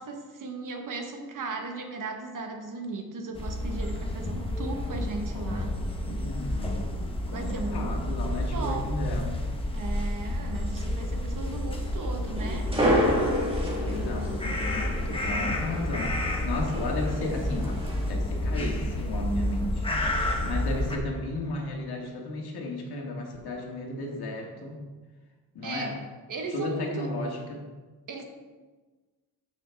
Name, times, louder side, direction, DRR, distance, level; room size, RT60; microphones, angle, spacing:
voice 1, 0.0-5.7 7.3-7.9 8.5-8.9 9.7-12.7 25.6-27.2 28.1-28.2, right 3 dB, 55° right, 3 dB, 1.3 m, -36 dB
sound 1, 3.3-21.0, left 1 dB, 15° left, 1.0 m, -30 dB
voice 2, 5.3-9.4 13.8-17.8 18.1-24.8 25.5-26.0 26.5-27.6, left 2 dB, 90° left, 0 dB, 1.9 m, -34 dB
sound 2, 12.4-18.1, equal, 15° right, 1.5 m, -30 dB
12.0 x 6.4 x 3.5 m, 1.3 s
wide cardioid pair, 170°, 37 cm